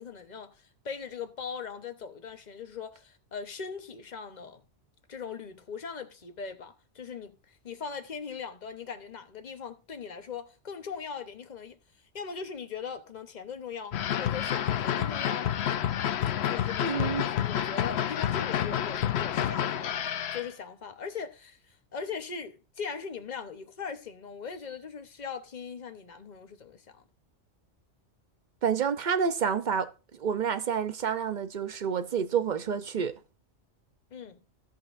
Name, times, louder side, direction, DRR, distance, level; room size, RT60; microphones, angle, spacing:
voice 1, 0.0-4.6 5.1-11.8 12.1-15.5 16.5-20.0 20.3-27.0 34.1-34.4, left 6 dB, 40° left, 1.0 m, -40 dB
sound 1, 13.9-20.5, left 10 dB, 65° left, 0.8 m, -29 dB
voice 2, 16.8-17.3 28.6-33.1, right 7 dB, 45° right, 0.7 m, -29 dB
15.5 x 5.6 x 2.6 m
omnidirectional pair, 1.3 m